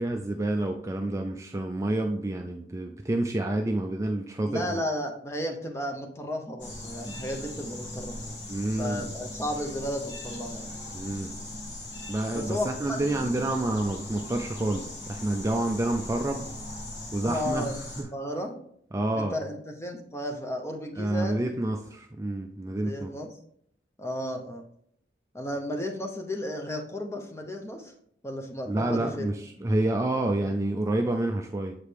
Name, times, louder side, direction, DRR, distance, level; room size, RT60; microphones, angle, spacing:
voice 1, 0.0-4.8 8.5-9.1 10.9-11.3 12.1-16.5 17.1-18.1 18.9-19.4 21.0-23.1 28.7-31.8, right 1 dB, 15° right, 3 dB, 0.3 m, -28 dB
voice 2, 4.5-8.3 8.8-10.7 12.3-13.0 17.2-17.8 18.1-18.5 19.1-21.5 22.8-23.3 24.0-24.6 25.3-27.9 28.2-29.3, left 1 dB, 15° left, 3 dB, 0.7 m, -33 dB
sound 1, 6.6-18.0, left 1 dB, 85° left, 1.7 m, -39 dB
7.4 x 4.9 x 3.3 m, 0.69 s
head